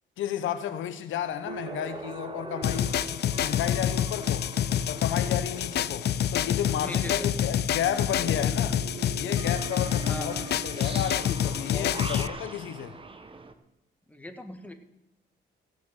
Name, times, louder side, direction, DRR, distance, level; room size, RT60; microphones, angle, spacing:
voice 1, 0.2-4.5 4.9-6.1 6.3-8.8 9.2-13.0, left 10 dB, 80° left, 1.0 m, -32 dB
sound 1, 1.4-13.5, right 4 dB, 25° right, 1.3 m, -41 dB
sound 2, 2.6-12.3, left 10 dB, 55° left, 0.5 m, -27 dB
voice 2, 6.8-7.3 10.1-10.5 11.6-12.4 14.1-14.7, left 1 dB, 5° left, 1.7 m, -40 dB
15.5 x 6.8 x 8.0 m
cardioid pair, 90°, 20 cm